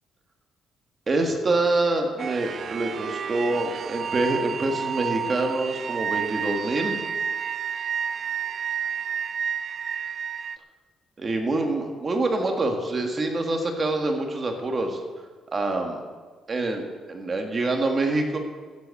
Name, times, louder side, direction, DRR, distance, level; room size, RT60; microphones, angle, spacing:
voice 1, 1.1-7.0 11.2-15.0 15.5-16.0 16.5-18.4, right 2 dB, 30° right, 3 dB, 1.8 m, -26 dB
sound 1, 2.2-10.6, right 7 dB, 45° right, 0.4 m, -30 dB
13.5 x 8.0 x 8.3 m, 1.5 s
cardioid pair, 150°, 0 cm